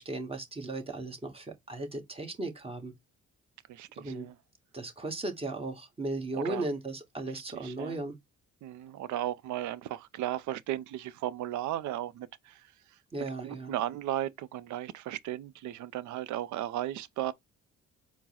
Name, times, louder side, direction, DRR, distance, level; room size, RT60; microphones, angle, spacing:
voice 1, 0.0-2.9 4.0-4.3 4.7-8.1 13.1-13.7, right 2 dB, 20° right, 1.2 m, -36 dB
voice 2, 3.7-4.4 6.3-6.7 7.3-8.0 8.6-12.7 13.4-17.3, right 13 dB, 75° right, 0.5 m, -35 dB
4.4 x 2.0 x 4.2 m
cardioid pair, 90°, 30 cm